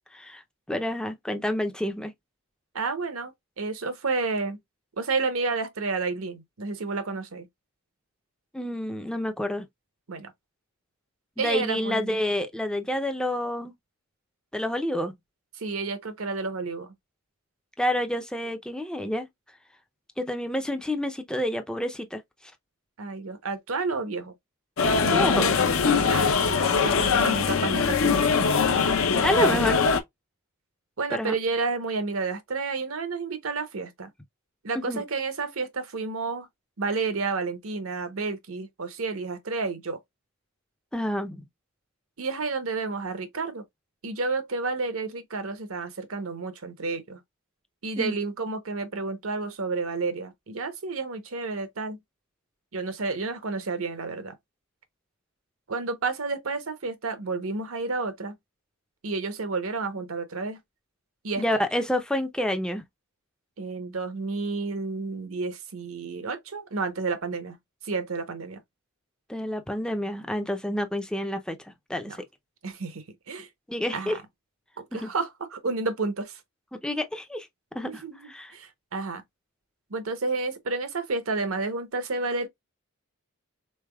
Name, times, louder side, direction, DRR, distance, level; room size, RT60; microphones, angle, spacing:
voice 1, 0.1-2.1 8.5-9.7 11.4-13.7 14.5-15.1 17.8-19.3 20.2-22.2 25.1-25.5 29.2-29.8 31.1-31.3 34.8-35.0 40.9-41.4 48.0-48.2 61.4-62.8 69.3-71.6 71.9-72.2 73.7-74.2 74.9-75.1 76.7-77.5 77.7-77.9 78.3-78.5, left 1 dB, 5° left, 0.5 m, -28 dB
voice 2, 2.7-4.6 5.0-7.5 10.1-10.3 11.4-12.2 15.6-16.9 23.0-24.3 26.1-26.5 26.8-28.5 29.4-29.7 31.0-34.1 34.6-36.5 36.8-40.0 42.2-43.6 44.0-47.2 47.8-52.0 52.7-54.3 55.7-58.3 59.0-60.6 61.2-61.4 63.6-67.6 67.8-68.6 72.1-72.2 72.6-73.5 73.9-74.1 74.8-76.4 77.8-79.2 79.9-82.5, right 3 dB, 70° right, 0.9 m, -31 dB
sound 1, 24.8-30.0, left 5 dB, 65° left, 0.6 m, -22 dB
3.8 x 3.3 x 2.2 m
head